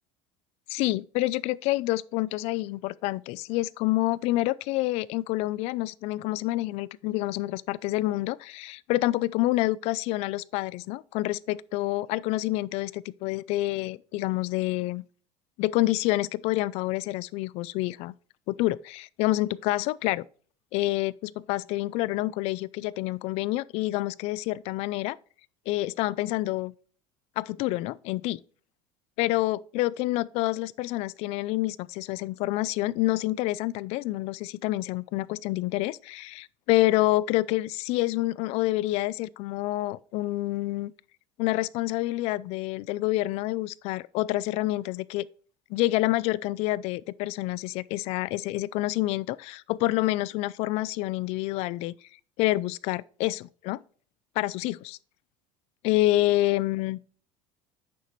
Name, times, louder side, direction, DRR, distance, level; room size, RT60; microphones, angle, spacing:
voice 1, 0.7-15.0 15.6-18.1 18.5-20.2 20.7-25.2 25.7-26.7 27.4-28.4 29.2-40.9 41.4-45.3 45.7-51.9 52.4-53.8 54.4-55.0 55.8-57.0, left 17 dB, 65° left, 0.4 m, -28 dB
9.3 x 6.7 x 3.1 m
cardioid pair, 130°, 12 cm